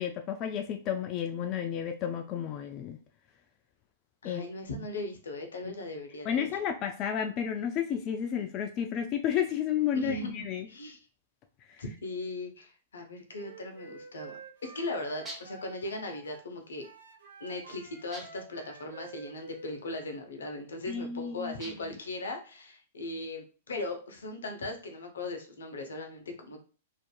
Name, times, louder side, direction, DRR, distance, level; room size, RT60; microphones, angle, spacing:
voice 1, 0.0-3.0 4.2-4.5 5.6-5.7 6.3-10.7 11.7-11.8 20.9-21.8, left 8 dB, 35° left, 5 dB, 0.3 m, -32 dB
voice 2, 4.2-6.5 9.9-11.0 11.8-14.3 14.6-16.9 17.4-26.6, left 2 dB, 80° left, 4 dB, 0.6 m, -38 dB
Wind instrument woodwind instrument, 13.3-16.5 16.8-20.2, right 4 dB, 75° right, 0.7 m, -49 dB
sound 1, 15.3-15.7 18.1-18.6 21.6-22.1, right 1 dB, 15° right, 0.7 m, -45 dB
2.5 x 2.5 x 2.2 m, 0.37 s
hypercardioid pair, 115°, 0 cm